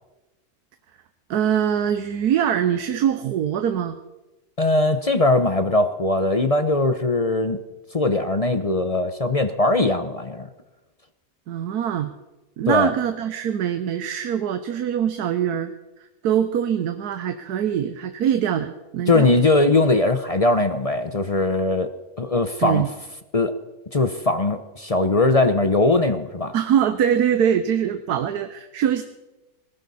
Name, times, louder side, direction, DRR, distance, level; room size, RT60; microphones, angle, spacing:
voice 1, 1.3-4.0 11.5-12.1 12.6-15.7 16.2-19.3 22.6-22.9 26.5-29.0, right 9 dB, 90° right, 10 dB, 1.3 m, -23 dB
voice 2, 4.6-7.6 7.9-10.5 12.7-12.9 19.1-21.9 22.2-22.9 23.3-23.5 23.9-26.5, left 2 dB, 35° left, 9 dB, 0.6 m, -20 dB
20.0 x 16.0 x 4.1 m, 1.1 s
omnidirectional pair, 1.6 m